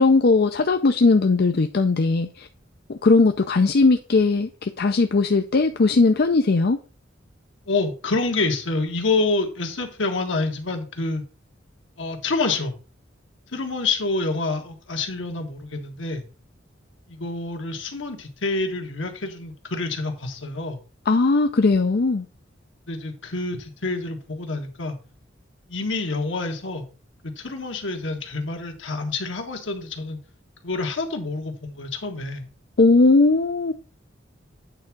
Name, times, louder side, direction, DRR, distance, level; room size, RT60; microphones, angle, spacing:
voice 1, 0.0-2.5 2.9-6.8 21.1-22.3 32.8-33.7, left 3 dB, 55° left, 0.5 m, -18 dB
voice 2, 7.7-11.2 12.0-12.7 13.5-16.2 17.1-20.8 22.9-25.0 25.7-26.9 27.2-30.2 30.6-32.5, left 3 dB, 75° left, 1.6 m, -27 dB
8.9 x 3.6 x 5.9 m
head